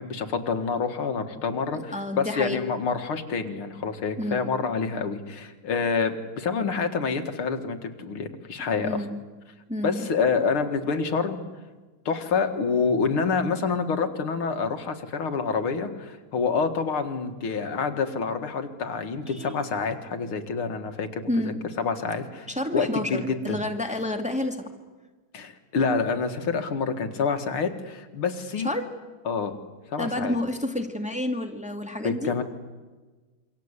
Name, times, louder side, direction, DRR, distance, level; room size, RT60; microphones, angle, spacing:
voice 1, 0.0-9.0 9.8-11.4 12.1-22.5 22.7-23.6 25.3-28.7 29.3-29.5 29.9-30.4 32.0-32.4, left 5 dB, 85° left, 7 dB, 2.8 m, -27 dB
voice 2, 1.9-2.6 4.2-4.5 8.8-9.2 9.7-10.1 19.3-19.5 21.3-21.6 22.5-24.6 28.6-28.9 30.0-32.3, left 1 dB, 5° right, 4 dB, 2.1 m, -29 dB
27.5 x 24.5 x 8.3 m, 1.3 s
omnidirectional pair, 2.3 m